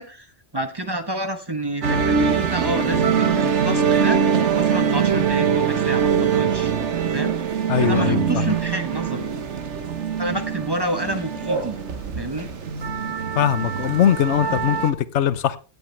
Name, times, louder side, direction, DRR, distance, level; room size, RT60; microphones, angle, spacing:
voice 1, 0.0-6.7 7.1-7.3 7.8-9.3 10.2-11.8 12.2-12.5, right 1 dB, 25° right, 1.0 m, -29 dB
sound 1, 1.8-14.9, right 7 dB, 80° right, 1.4 m, -23 dB
voice 2, 7.7-8.5 13.4-15.6, left 10 dB, 85° left, 1.0 m, -21 dB
sound 2, 9.0-14.5, right 3 dB, 65° right, 5.9 m, -37 dB
16.5 x 8.3 x 3.2 m
omnidirectional pair, 1.2 m